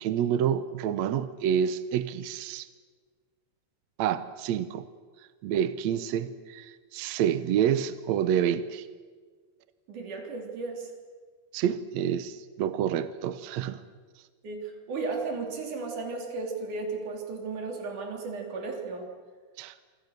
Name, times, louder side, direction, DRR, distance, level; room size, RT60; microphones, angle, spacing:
voice 1, 0.0-2.7 4.0-4.9 5.4-8.9 11.5-13.8 19.6-19.7, right 9 dB, 75° right, 13 dB, 1.6 m, -28 dB
voice 2, 9.9-10.9 14.4-19.1, right 3 dB, 55° right, 2 dB, 4.8 m, -34 dB
27.0 x 26.0 x 6.7 m, 1.5 s
omnidirectional pair, 4.3 m